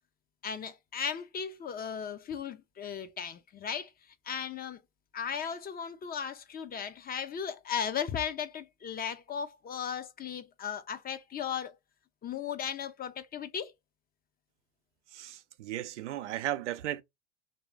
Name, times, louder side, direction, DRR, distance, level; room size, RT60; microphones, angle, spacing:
voice 1, 0.4-3.9 4.2-4.8 5.1-11.8 12.2-13.7, left 7 dB, 25° left, 0.6 m, -36 dB
voice 2, 15.1-17.0, right 12 dB, 85° right, 0.5 m, -35 dB
3.2 x 2.7 x 3.1 m
hypercardioid pair, 85°, 34 cm